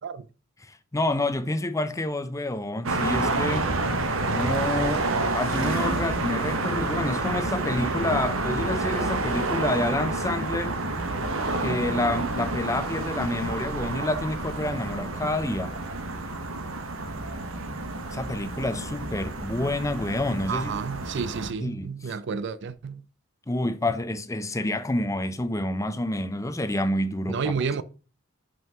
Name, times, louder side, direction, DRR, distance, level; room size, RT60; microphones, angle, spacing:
voice 1, 0.6-3.7 4.3-10.8 11.6-15.8 18.1-20.7 21.6-22.1 23.5-27.5, left 1 dB, 15° left, 0.6 m, -28 dB
sound 1, 2.8-21.5, right 2 dB, 80° right, 1.1 m, -29 dB
voice 2, 20.5-23.0 27.3-27.8, right 5 dB, 60° right, 0.5 m, -30 dB
5.6 x 5.5 x 5.7 m
head